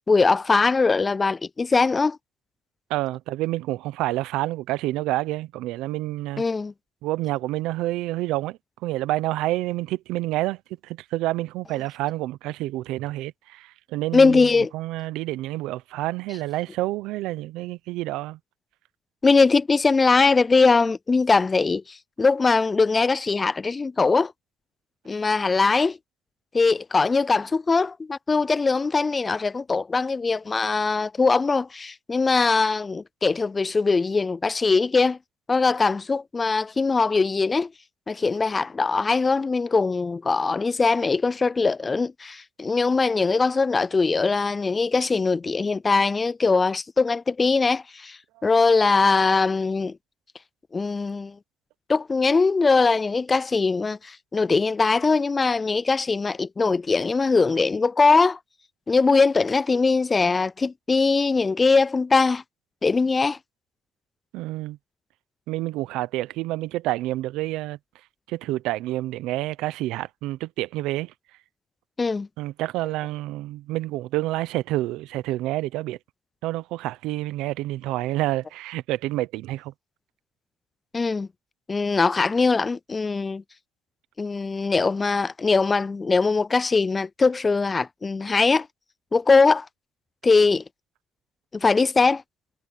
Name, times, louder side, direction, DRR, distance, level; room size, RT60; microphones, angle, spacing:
voice 1, 0.0-2.2 6.4-6.7 14.1-14.7 19.2-24.3 25.1-26.0 26.5-35.2 35.5-37.7 38.1-50.0 50.7-51.4 51.9-58.4 58.9-62.4 62.8-63.4 72.0-72.3 80.9-81.3 81.7-83.4 84.2-88.7 89.1-89.7 90.2-90.6 91.5-92.2, left 4 dB, 30° left, 0.3 m, -21 dB
voice 2, 2.9-6.4 7.0-10.6 10.8-18.4 64.3-64.8 65.5-67.8 68.3-71.1 72.4-76.0 76.4-79.7, right 17 dB, 85° right, 0.7 m, -28 dB
supercardioid pair, 75°, 0 cm